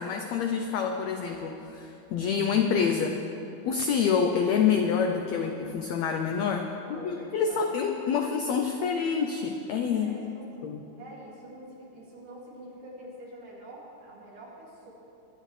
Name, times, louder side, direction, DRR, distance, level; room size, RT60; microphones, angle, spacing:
voice 1, 0.0-3.2 3.6-10.1 10.6-10.8, left 6 dB, 90° left, 4 dB, 1.5 m, -27 dB
voice 2, 6.7-8.1 8.7-9.0 9.9-10.5 11.0-14.9, right 1 dB, 65° right, -5 dB, 3.9 m, -46 dB
23.0 x 11.0 x 3.2 m, 2.9 s
omnidirectional pair, 3.9 m